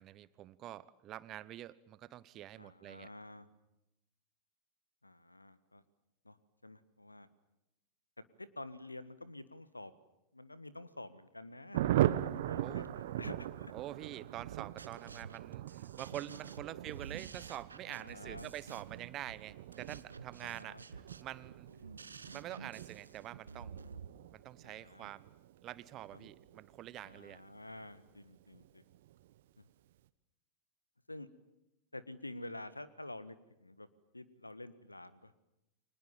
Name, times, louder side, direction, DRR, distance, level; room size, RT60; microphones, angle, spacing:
voice 1, 0.0-3.1 12.6-12.9 13.7-21.7 22.3-23.8 24.3-25.3 25.6-27.4, right 13 dB, 35° right, 18 dB, 1.1 m, -46 dB
voice 2, 2.6-3.5 5.0-5.8 6.2-6.4 6.6-7.3 8.4-9.9 10.3-13.7 16.7-16.8 17.9-18.5 20.4-20.8 21.9-22.0 24.6-25.1 26.1-26.3 27.0-28.8 29.6-29.7 31.1-31.3 31.9-33.9 34.1-35.4, left 2 dB, 85° left, 15 dB, 1.5 m, -49 dB
Thunder, 11.7-27.9 28.1-28.2 28.5-28.7 28.9-29.3, right 13 dB, 55° right, 1.0 m, -40 dB
sound 1, 14.5-24.1, right 5 dB, 75° right, 1.3 m, -51 dB
30.0 x 25.0 x 7.3 m, 0.90 s
figure-of-eight pair, 90°, 0 cm